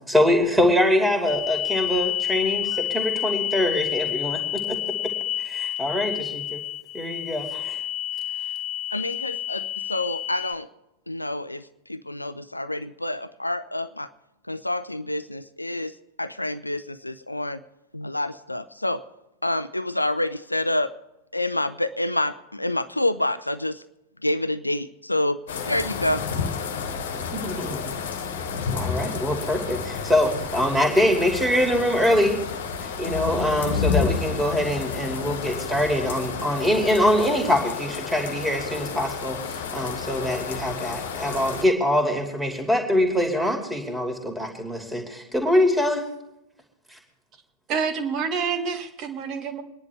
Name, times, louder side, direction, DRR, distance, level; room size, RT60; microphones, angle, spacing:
voice 1, 0.1-4.8 5.4-6.6 6.9-7.8 27.3-27.9 28.7-32.4 32.8-46.1 46.9-47.0, left 1 dB, 5° right, 2 dB, 2.5 m, -24 dB
sound 1, 1.3-10.5, left 12 dB, 30° left, 0.5 m, -29 dB
voice 2, 8.9-10.7 11.1-11.6 11.9-14.1 14.5-17.6 17.9-19.0 19.4-20.9 21.3-23.8 24.2-25.4 25.7-26.2, left 1 dB, 85° left, 13 dB, 0.5 m, -27 dB
sound 2, 25.5-41.6, left 6 dB, 60° left, 1.4 m, -30 dB
voice 3, 47.7-49.6, right 6 dB, 35° right, 7 dB, 1.6 m, -27 dB
25.5 x 10.5 x 3.5 m, 0.89 s
figure-of-eight pair, 90°, 0 cm